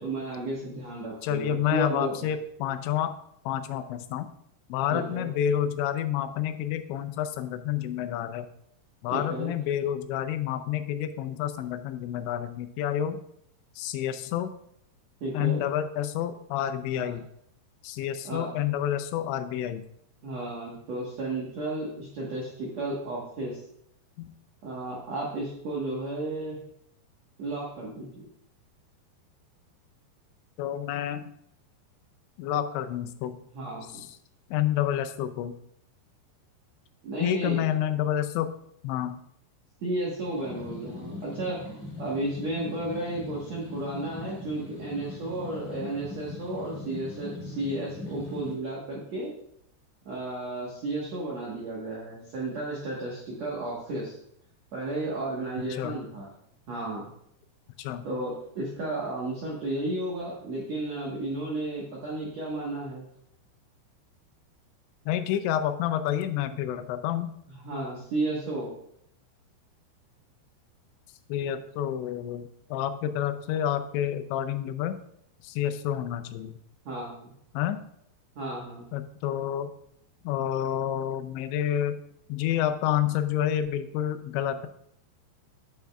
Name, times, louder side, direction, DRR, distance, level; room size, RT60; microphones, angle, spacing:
voice 1, 0.0-2.3 4.9-5.3 9.1-9.5 15.2-15.6 16.9-17.1 18.2-18.5 20.2-23.6 24.6-26.6 27.4-28.2 33.5-34.1 37.0-37.6 39.8-49.3 50.0-54.2 54.7-56.3 56.7-57.1 58.0-63.1 67.6-68.7 76.8-77.3 78.3-78.9, right 2 dB, 70° right, -5 dB, 1.6 m, -33 dB
voice 2, 1.2-3.1 3.5-4.3 4.7-8.5 9.0-13.2 13.8-14.5 15.3-17.3 17.8-19.8 24.2-24.3 30.6-31.3 32.4-33.4 33.9-34.1 34.5-35.6 37.2-38.5 38.8-39.2 55.7-56.0 57.8-58.1 65.1-67.3 71.3-75.0 75.4-76.6 77.5-77.8 78.9-79.7 80.2-82.0 82.3-84.7, left 10 dB, 90° left, 9 dB, 2.9 m, -29 dB
sound 1, 40.2-48.5, left 3 dB, 45° left, 4.2 m, -40 dB
8.9 x 8.1 x 2.3 m, 0.72 s
omnidirectional pair, 5.1 m